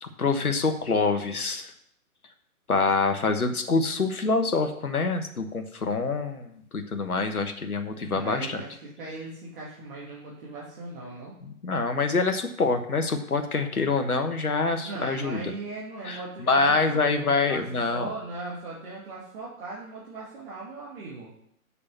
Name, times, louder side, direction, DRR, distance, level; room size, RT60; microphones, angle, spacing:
voice 1, 0.0-1.7 2.7-8.6 11.6-15.4 16.0-16.2 16.5-18.1, left 4 dB, 80° left, 7 dB, 1.3 m, -25 dB
voice 2, 8.0-11.4 14.8-21.3, right 3 dB, 40° right, -5 dB, 2.6 m, -39 dB
6.9 x 6.7 x 7.3 m, 0.69 s
figure-of-eight pair, 130°, 44 cm